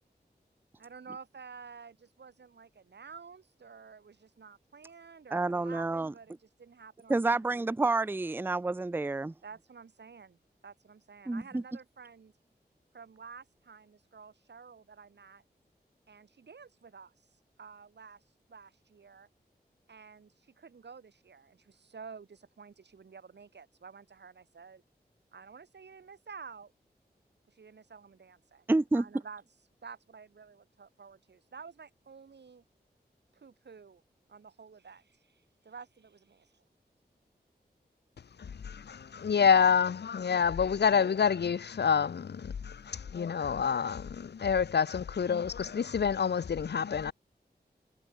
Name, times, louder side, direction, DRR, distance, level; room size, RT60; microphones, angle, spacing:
voice 1, 0.8-7.9 9.4-10.4 10.6-12.3 12.9-15.4 16.1-17.1 17.6-18.2 18.5-19.3 19.9-24.8 25.3-26.7 27.5-28.6 28.9-29.4 29.8-32.6 33.3-34.0 34.3-36.6, right 5 dB, 85° right, 2.5 m, -51 dB
voice 2, 5.3-6.1 7.1-9.3 11.3-11.6 28.7-29.0, right 2 dB, 10° right, 0.4 m, -29 dB
voice 3, 39.1-47.1, left 6 dB, 75° left, 0.7 m, -27 dB
cardioid pair, 45°, 17 cm